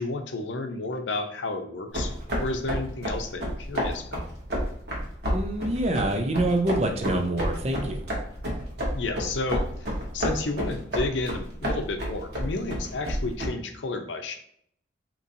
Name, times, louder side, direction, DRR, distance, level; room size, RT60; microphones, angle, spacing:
voice 1, 0.0-4.2 8.9-14.4, left 3 dB, 80° left, 5 dB, 0.6 m, -31 dB
sound 1, 1.9-13.5, equal, 60° right, 1.2 m, -30 dB
voice 2, 5.3-8.1, right 1 dB, 35° right, 5 dB, 0.5 m, -26 dB
3.9 x 2.9 x 2.7 m, 0.66 s
head